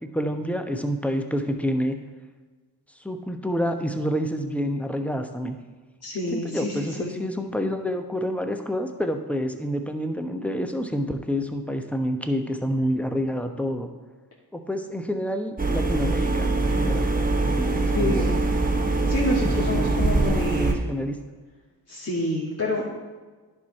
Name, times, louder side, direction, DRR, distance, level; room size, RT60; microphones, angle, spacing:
voice 1, 0.0-2.0 3.0-5.6 6.3-13.9 14.5-17.1 17.4-18.3 19.4-21.2, equal, 5° left, 6 dB, 1.1 m, -28 dB
voice 2, 6.0-7.2 17.9-18.4 19.1-20.8 21.9-22.8, left 1 dB, 35° left, -6 dB, 2.3 m, -28 dB
sound 1, 15.6-20.7, right 2 dB, 20° right, 1.4 m, -23 dB
10.5 x 5.5 x 4.2 m, 1.3 s
supercardioid pair, 45°, 45 cm